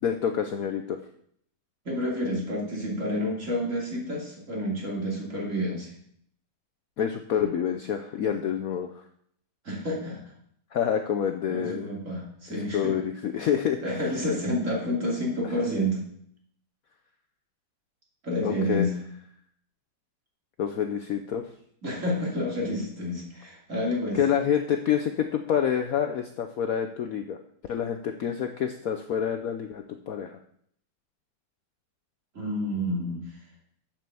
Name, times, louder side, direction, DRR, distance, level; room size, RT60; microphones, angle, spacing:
voice 1, 0.0-1.0 7.0-8.9 10.7-11.9 12.7-14.0 18.4-18.9 20.6-21.5 24.1-27.4 27.7-30.4, left 8 dB, 65° left, 6 dB, 0.9 m, -27 dB
voice 2, 1.8-5.9 9.6-10.2 11.5-12.9 13.8-16.0 18.2-18.9 21.8-24.2 32.3-33.2, left 1 dB, 40° right, -2 dB, 3.2 m, -29 dB
7.7 x 7.5 x 6.9 m, 0.67 s
omnidirectional pair, 2.1 m